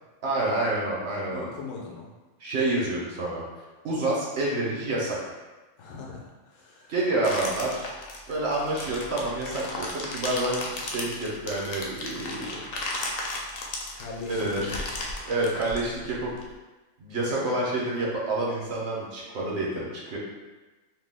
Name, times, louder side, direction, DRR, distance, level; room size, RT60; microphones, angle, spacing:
voice 1, 0.2-1.4 2.4-3.4 3.8-5.2 6.9-7.8 8.3-12.6 14.3-14.7 15.3-16.3 17.0-20.2, right 2 dB, 60° right, -5 dB, 1.0 m, -28 dB
voice 2, 1.3-2.1 5.8-7.0 13.9-15.3, left 4 dB, 85° left, -2 dB, 1.0 m, -40 dB
sound 1, 7.2-16.4, left 2 dB, 65° left, 0.7 m, -35 dB
2.7 x 2.2 x 3.4 m, 1.2 s
omnidirectional pair, 1.3 m